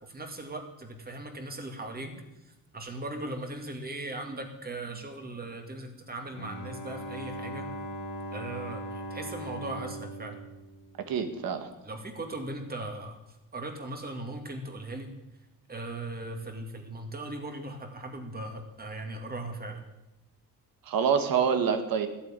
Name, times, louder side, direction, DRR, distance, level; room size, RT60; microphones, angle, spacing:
voice 1, 0.0-2.2 2.7-7.7 8.3-10.4 11.8-13.2 13.5-15.1 15.7-19.9, right 2 dB, 25° right, 4 dB, 2.4 m, -38 dB
Bowed string instrument, 6.3-11.6, right 1 dB, 90° left, 3.3 m, -40 dB
voice 2, 11.1-11.7 20.9-22.1, right 7 dB, 75° right, 8 dB, 1.8 m, -26 dB
14.5 x 8.6 x 9.0 m, 0.94 s
cardioid pair, 135°, 35 cm